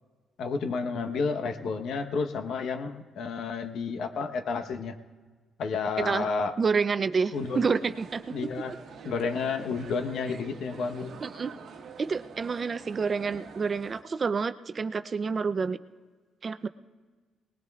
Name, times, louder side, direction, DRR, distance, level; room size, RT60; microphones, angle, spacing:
voice 1, 0.4-4.9 5.6-6.5 7.3-7.8 8.3-8.7 9.0-11.1, left 4 dB, 70° left, 7 dB, 0.9 m, -31 dB
voice 2, 6.6-8.3 11.2-11.5 12.0-15.8 16.4-16.7, right 5 dB, 40° right, 12 dB, 0.5 m, -28 dB
sound 1, 7.3-14.0, right 5 dB, 70° right, 1.1 m, -46 dB
20.0 x 19.0 x 2.4 m, 1.4 s
cardioid pair, 90°, 0 cm